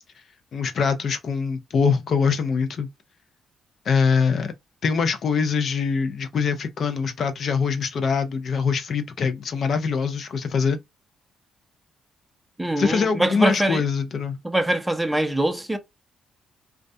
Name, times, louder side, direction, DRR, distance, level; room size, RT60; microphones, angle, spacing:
voice 1, 0.5-2.9 3.9-4.5 4.8-10.8 12.8-14.4, left 5 dB, 55° left, 0.5 m, -23 dB
voice 2, 12.6-13.8 14.4-15.8, right 1 dB, 5° right, 0.5 m, -23 dB
2.3 x 2.1 x 2.5 m
cardioid pair, 90°, 0 cm